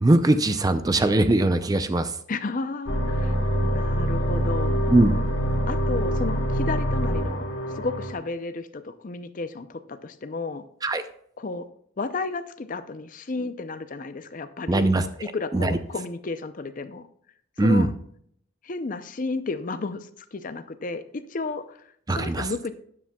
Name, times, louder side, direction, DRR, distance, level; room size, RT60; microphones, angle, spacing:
voice 1, 0.0-2.2 4.9-5.2 10.8-11.0 14.7-15.1 15.5-15.8 17.6-17.9 22.1-22.5, right 2 dB, 15° right, 10 dB, 0.4 m, -20 dB
voice 2, 2.3-4.8 5.7-10.7 11.4-11.7 12.0-14.9 15.3-17.1 17.6-17.9 18.6-22.7, left 3 dB, 40° left, 11 dB, 0.5 m, -33 dB
sound 1, 2.9-8.1, equal, 70° left, 1.6 m, -25 dB
13.0 x 9.9 x 2.3 m, 0.66 s
head